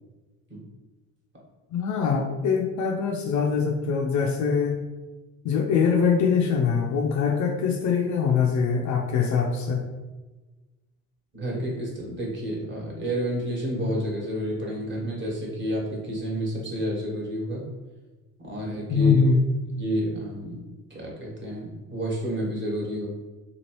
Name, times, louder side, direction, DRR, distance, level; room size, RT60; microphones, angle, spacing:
voice 1, 1.7-4.8 5.4-9.8 18.9-19.4, left 6 dB, 45° left, 2 dB, 0.5 m, -23 dB
voice 2, 11.3-17.6 18.4-19.2 19.7-20.6 20.9-23.1, equal, 30° right, -3 dB, 1.3 m, -30 dB
3.0 x 2.4 x 3.0 m, 1.2 s
hypercardioid pair, 70°, 40 cm